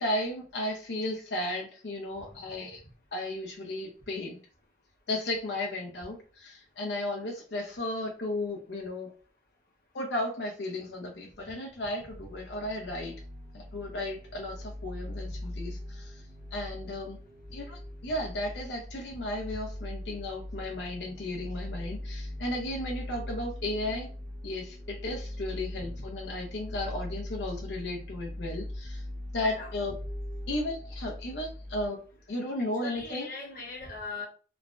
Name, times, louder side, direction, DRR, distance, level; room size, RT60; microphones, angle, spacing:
voice 1, 0.0-2.8 3.1-4.4 5.1-9.1 9.9-13.2 13.5-16.2 16.5-17.2 17.5-24.1 24.4-29.0 29.3-30.0 30.5-32.0 32.3-33.3, left 1 dB, 85° left, 0.6 m, -34 dB
sound 1, 12.1-31.9, left 1 dB, 50° right, 1.3 m, -40 dB
voice 2, 32.8-34.3, left 3 dB, 55° left, 0.9 m, -39 dB
3.1 x 2.1 x 2.5 m
head